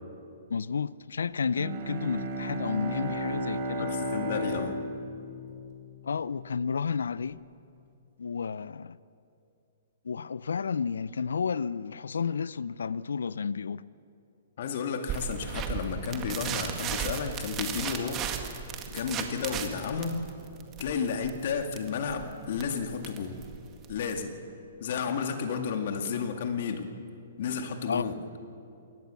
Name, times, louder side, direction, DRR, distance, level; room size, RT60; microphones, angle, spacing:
voice 1, 0.5-3.9 6.0-7.4 8.2-9.0 10.0-13.8 27.9-28.0, left 6 dB, 80° left, 0.5 m, -31 dB
Bowed string instrument, 1.4-6.3, equal, 45° right, 3.5 m, -34 dB
voice 2, 3.8-4.8 14.6-18.4 18.9-20.2 20.8-23.4 23.9-24.3 24.8-26.9 27.4-28.2, left 6 dB, 60° left, 2.1 m, -32 dB
sound 1, 15.1-24.2, right 8 dB, 25° right, 1.9 m, -36 dB
22.0 x 18.5 x 7.1 m
hypercardioid pair, 130°, 0 cm